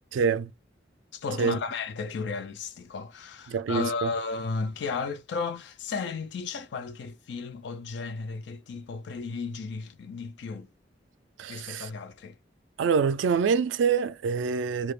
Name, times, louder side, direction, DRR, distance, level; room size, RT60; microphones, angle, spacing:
voice 1, 0.1-0.5 1.4-1.6 3.5-4.1 11.4-11.9 12.8-14.9, right 6 dB, 80° right, 0.3 m, -26 dB
voice 2, 1.1-10.7 11.5-12.4, left 4 dB, 65° left, 0.4 m, -34 dB
2.3 x 2.0 x 3.1 m
head